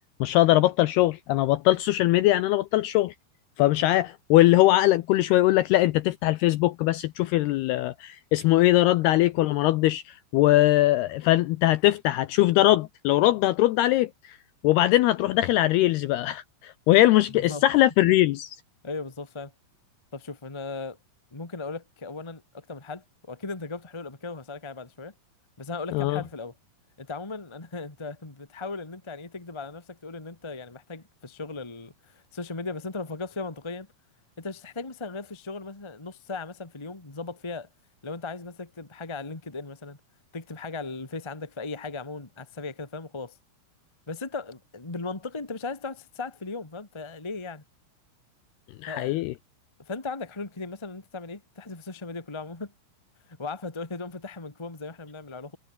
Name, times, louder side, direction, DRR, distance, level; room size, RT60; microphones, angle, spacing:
voice 1, 0.2-3.1 3.6-14.4 14.6-18.6 25.9-26.2 48.8-49.3, left 16 dB, 85° left, 2.3 m, -21 dB
voice 2, 17.3-17.6 18.8-19.5 20.1-21.0 21.3-25.1 25.6-26.5 27.0-33.9 34.4-37.7 38.0-40.0 40.3-43.4 44.1-47.6 48.9-49.2 49.8-52.7 53.3-55.6, left 3 dB, 20° left, 0.7 m, -37 dB
omnidirectional pair, 5.4 m